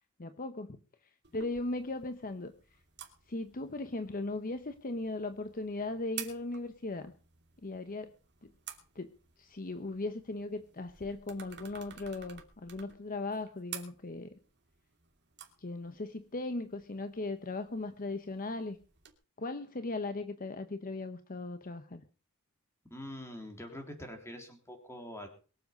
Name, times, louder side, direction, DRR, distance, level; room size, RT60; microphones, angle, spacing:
voice 1, 0.2-0.8 1.3-2.5 3.3-7.1 7.6-8.1 8.4-8.5 8.9-9.1 9.4-14.3 15.6-18.8 19.4-22.0, left 2 dB, 40° left, 9 dB, 0.9 m, -38 dB
sound 1, 1.2-19.1, right 10 dB, 50° right, 2.8 m, -52 dB
voice 2, 22.9-25.3, left 1 dB, 10° left, 4 dB, 3.5 m, -44 dB
23.0 x 7.8 x 5.2 m, 0.39 s
head